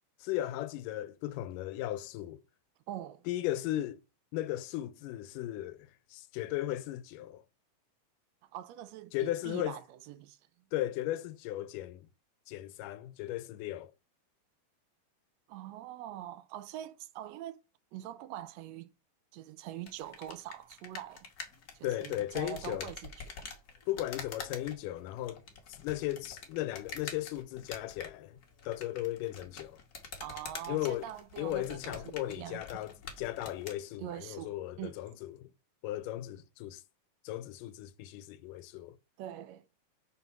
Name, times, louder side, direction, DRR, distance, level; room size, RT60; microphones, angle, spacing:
voice 1, 0.2-2.4 3.3-4.0 4.3-7.4 9.1-9.8 10.7-12.1 12.5-13.9 21.8-22.9 23.9-25.4 25.7-29.8 30.7-31.1 31.4-35.5 35.8-36.8 37.2-39.0, left 14 dB, 85° left, 2.2 m, -36 dB
voice 2, 2.9-3.3 8.4-10.4 15.5-17.6 17.9-18.9 19.3-21.3 21.7-23.1 23.4-23.5 30.2-32.6 34.0-35.0 39.2-39.6, right 12 dB, 75° right, 1.6 m, -43 dB
sound 1, 19.8-33.8, left 5 dB, 65° left, 0.9 m, -47 dB
5.6 x 4.0 x 5.9 m
omnidirectional pair, 3.7 m